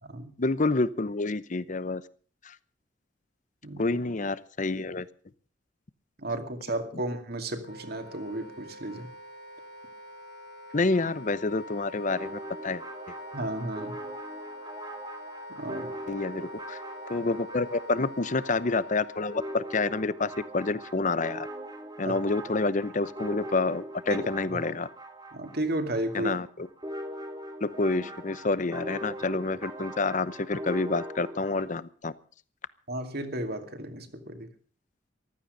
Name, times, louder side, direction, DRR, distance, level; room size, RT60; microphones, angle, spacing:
voice 1, 0.4-2.0 3.8-5.1 10.7-12.8 16.1-16.8 17.1-21.5 22.0-24.9 26.1-26.5 27.6-32.1, left 3 dB, 45° left, 17 dB, 0.8 m, -28 dB
voice 2, 6.2-9.1 13.3-14.0 15.5-16.0 22.0-22.2 24.1-24.2 24.5-24.6 25.3-26.4 32.9-34.5, right 1 dB, 55° right, 7 dB, 2.4 m, -33 dB
Wind instrument woodwind instrument, 7.6-19.5, left 1 dB, 60° left, 1.4 m, -44 dB
sound 1, 12.1-31.6, right 1 dB, 25° right, 2.6 m, -41 dB
15.0 x 13.0 x 6.5 m, 0.43 s
head